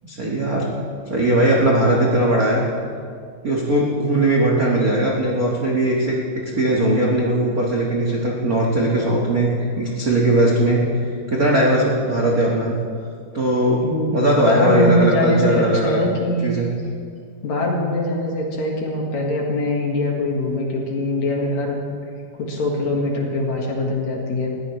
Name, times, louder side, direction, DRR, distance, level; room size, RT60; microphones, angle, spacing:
voice 1, 0.0-0.7 1.1-2.6 3.4-6.2 6.6-10.8 11.3-12.8 13.3-13.8 14.1-16.0 16.4-16.7, right 1 dB, 50° right, -3 dB, 1.1 m, -19 dB
voice 2, 13.8-16.5 17.4-21.8 22.3-24.6, left 1 dB, 55° left, -1 dB, 2.8 m, -22 dB
20.5 x 15.5 x 3.2 m, 2.2 s
omnidirectional pair, 4.2 m